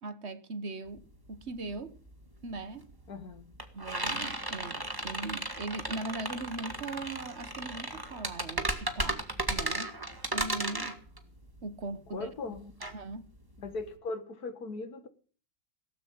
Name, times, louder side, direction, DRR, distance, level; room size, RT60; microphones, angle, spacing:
voice 1, 0.0-2.0 2.4-2.9 3.7-9.9 10.3-11.0 11.6-12.3 12.8-13.3, right 3 dB, 50° right, 1.4 m, -40 dB
sound 1, 0.9-1.0 1.2-13.9, right 1 dB, 15° right, 2.0 m, -35 dB
voice 2, 3.1-3.4 12.1-12.7 13.6-15.1, left 3 dB, 85° left, 2.2 m, -39 dB
17.5 x 8.7 x 8.6 m
omnidirectional pair, 1.6 m